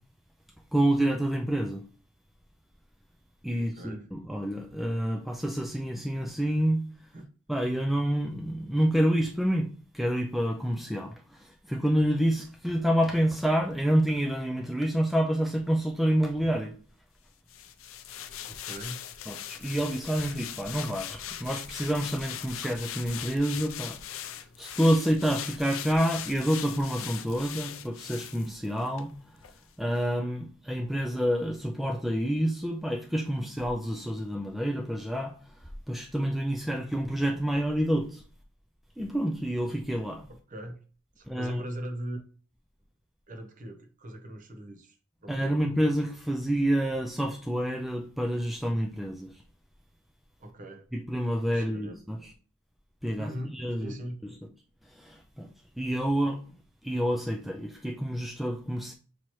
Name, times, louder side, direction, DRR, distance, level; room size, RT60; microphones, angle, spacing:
voice 1, 0.7-1.8 3.4-6.8 7.5-9.7 9.9-16.8 19.3-24.0 24.6-29.1 29.8-35.4 35.9-38.2 39.0-40.2 41.3-41.6 45.3-49.3 51.1-52.2 53.0-53.9 55.0-55.5 55.8-56.4 56.8-58.9, equal, ahead, 0.3 m, -28 dB
voice 2, 3.6-4.1 7.1-7.3 18.5-19.0 40.3-40.8 41.2-42.2 43.3-45.0 45.2-45.7 50.4-50.9 51.5-52.0 53.2-54.2, right 1 dB, 40° right, 0.7 m, -40 dB
sound 1, 17.5-29.1 29.4-29.6, left 10 dB, 80° left, 0.4 m, -40 dB
6.0 x 2.9 x 3.0 m
head